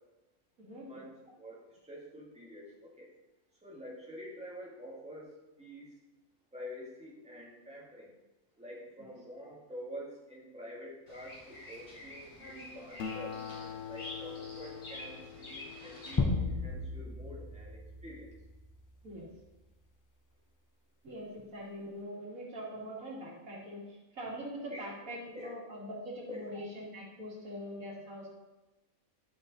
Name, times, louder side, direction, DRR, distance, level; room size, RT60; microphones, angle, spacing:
voice 1, 0.8-3.1 3.6-6.0 6.5-8.1 8.6-13.4 13.9-18.3 23.0-23.1 24.7-24.9 25.3-25.5 26.3-26.5, equal, 5° right, -6 dB, 2.1 m, -47 dB
Bird vocalization bird call bird song, 11.1-16.2, left 1 dB, 55° left, 3.0 m, -48 dB
Acoustic guitar, 13.0-17.8, left 7 dB, 70° left, 0.9 m, -45 dB
sound 1, 16.2-19.0, left 3 dB, 30° left, 0.4 m, -35 dB
voice 2, 21.0-23.8 24.1-28.4, equal, 80° right, -3 dB, 2.4 m, -43 dB
11.0 x 5.9 x 4.0 m, 1.1 s
omnidirectional pair, 1.4 m